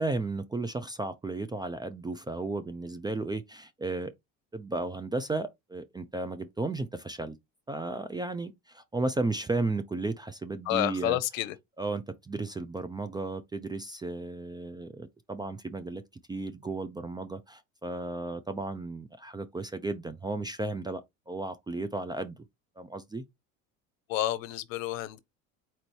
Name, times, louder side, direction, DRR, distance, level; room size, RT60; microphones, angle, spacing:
voice 1, 0.0-4.1 4.5-7.4 7.7-11.2 11.8-16.0 16.3-21.0 21.3-22.4 22.8-23.2, right 2 dB, 10° right, 0.4 m, -34 dB
voice 2, 10.7-11.5 24.1-25.2, left 14 dB, 75° left, 0.8 m, -29 dB
4.3 x 2.6 x 4.5 m
hypercardioid pair, 85°, 40 cm